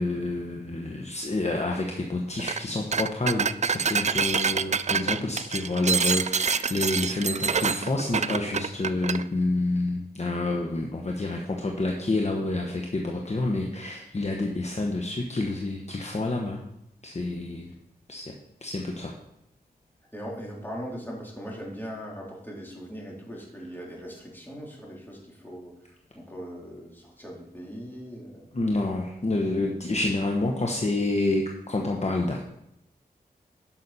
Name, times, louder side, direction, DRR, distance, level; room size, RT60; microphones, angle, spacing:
voice 1, 0.0-16.6 17.0-17.7 18.1-18.2 18.6-19.1 28.5-32.4, left 2 dB, 40° left, 0 dB, 1.2 m, -28 dB
sound 1, 2.4-2.6 2.9-9.2, right 6 dB, 45° right, 0.4 m, -26 dB
voice 2, 20.1-25.7 26.2-28.5, equal, 10° left, -3 dB, 3.6 m, -40 dB
11.0 x 6.3 x 4.3 m, 0.80 s
cardioid pair, 50°, 17 cm